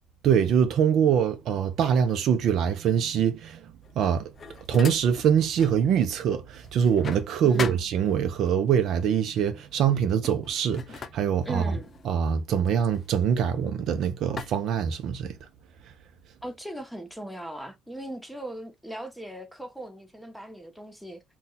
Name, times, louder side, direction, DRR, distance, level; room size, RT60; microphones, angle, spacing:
voice 1, 0.2-4.3 4.7-11.8 12.0-15.3, right 8 dB, 65° right, 0.6 m, -24 dB
sound 1, 3.8-5.8 6.2-8.5 9.4-9.6 10.0-13.8 14.4-15.5, left 5 dB, 45° left, 0.5 m, -40 dB
voice 2, 11.4-11.9 16.4-21.2, right 1 dB, ahead, 1.0 m, -38 dB
2.7 x 2.3 x 3.9 m
supercardioid pair, 70°, 0 cm